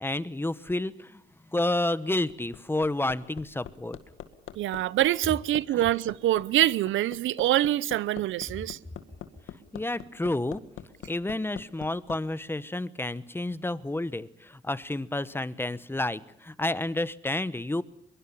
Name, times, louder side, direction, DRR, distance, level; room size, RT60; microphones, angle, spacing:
voice 1, 0.0-1.2 1.5-4.0 5.7-5.8 9.7-10.6 11.1-17.8, left 2 dB, 10° left, 1.1 m, -30 dB
Hammer, 2.3-12.2 13.5-13.6, left 11 dB, 85° left, 2.0 m, -43 dB
voice 2, 4.6-8.8, right 14 dB, 80° right, 0.8 m, -25 dB
23.0 x 22.5 x 7.2 m
cardioid pair, 90°, 20 cm